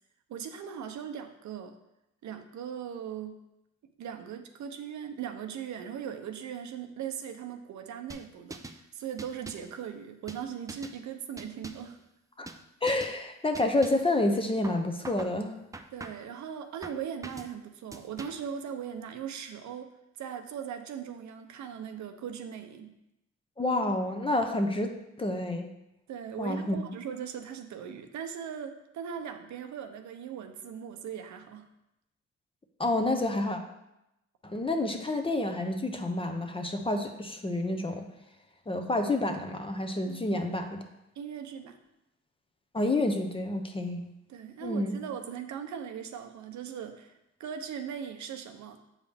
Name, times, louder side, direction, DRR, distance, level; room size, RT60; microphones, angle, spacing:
voice 1, 0.3-1.7 2.2-3.4 4.0-12.0 15.9-19.9 20.2-23.0 26.1-31.7 40.0-40.4 41.2-41.8 44.3-47.1 47.4-48.8, right 8 dB, 70° right, 6 dB, 0.7 m, -39 dB
sound 1, 8.1-8.8 9.2-9.7 10.3-11.0 11.4-11.9 12.5-12.6 12.9-13.2 13.5-14.1 14.6-15.4 15.7-16.3 16.8-17.5 17.9-18.5, right 2 dB, 10° right, 0.4 m, -44 dB
voice 2, 12.8-15.5 23.6-24.9 25.2-25.7 26.4-26.8 32.8-33.6 34.4-38.1 38.7-40.8 42.7-44.0 44.6-45.0, left 2 dB, 20° left, 5 dB, 0.8 m, -29 dB
7.7 x 4.9 x 3.5 m, 0.88 s
cardioid pair, 90°, 30 cm